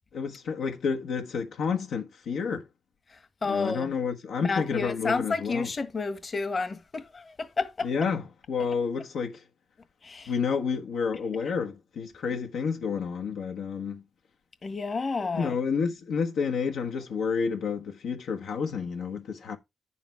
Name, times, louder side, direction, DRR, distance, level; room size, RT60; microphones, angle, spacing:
voice 1, 0.1-2.6 3.4-5.7 7.8-9.4 10.3-14.0 15.2-19.6, left 5 dB, 85° left, 1.2 m, -30 dB
voice 2, 3.1-3.9 4.4-7.9 10.0-10.3 14.6-15.5, left 4 dB, 50° left, 1.4 m, -31 dB
9.2 x 7.1 x 3.3 m
supercardioid pair, 55°, 0 cm